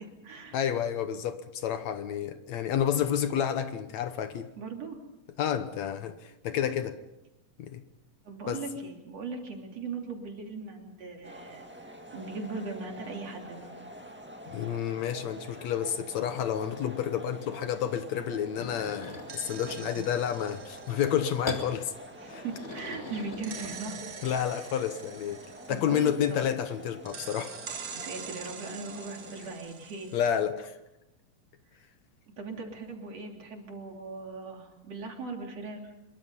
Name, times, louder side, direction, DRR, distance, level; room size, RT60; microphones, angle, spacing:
voice 1, 0.0-0.6 4.6-5.0 8.3-11.7 12.1-13.7 19.7-20.1 22.2-24.0 25.7-26.1 27.9-30.1 32.4-35.9, right 4 dB, 55° right, 4.1 m, -39 dB
voice 2, 0.5-4.5 5.4-7.0 7.6-7.8 8.5-8.6 14.5-21.9 22.3-22.4 24.2-25.4 25.7-27.6 30.1-30.7, left 9 dB, 70° left, 2.2 m, -30 dB
sound 1, 11.2-29.5, equal, 5° right, 0.8 m, -47 dB
sound 2, 18.6-19.6 21.4-21.7 22.3-24.2, left 3 dB, 25° left, 2.0 m, -40 dB
sound 3, 19.1-22.7 23.4-26.6 27.0-30.4, right 7 dB, 75° right, 0.8 m, -45 dB
25.5 x 23.0 x 5.5 m
omnidirectional pair, 3.5 m